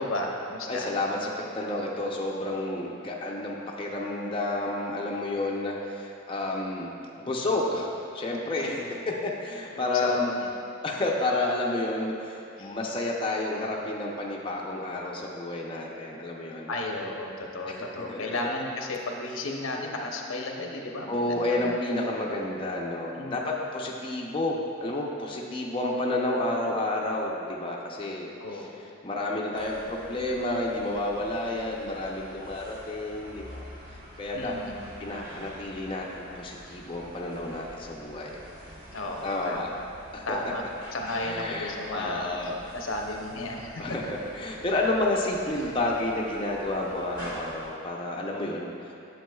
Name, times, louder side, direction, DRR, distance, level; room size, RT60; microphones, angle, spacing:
voice 1, 0.0-0.9 8.6-8.9 9.7-10.5 12.6-12.8 16.7-21.8 23.1-23.6 28.4-28.8 34.3-34.8 38.9-39.7 40.3-40.6 40.9-44.0, left 2 dB, 90° left, 1 dB, 0.8 m, -34 dB
voice 2, 0.7-9.0 9.2-10.3 10.8-16.7 17.7-18.4 21.1-28.7 29.0-33.6 34.2-34.5 35.0-38.4 39.2-39.7 40.1-40.2 41.2-42.6 43.8-48.9, left 2 dB, 25° left, -2 dB, 0.5 m, -30 dB
sound 1, 29.5-47.7, equal, 45° right, 1.6 m, -47 dB
9.2 x 7.5 x 2.3 m, 2.7 s
head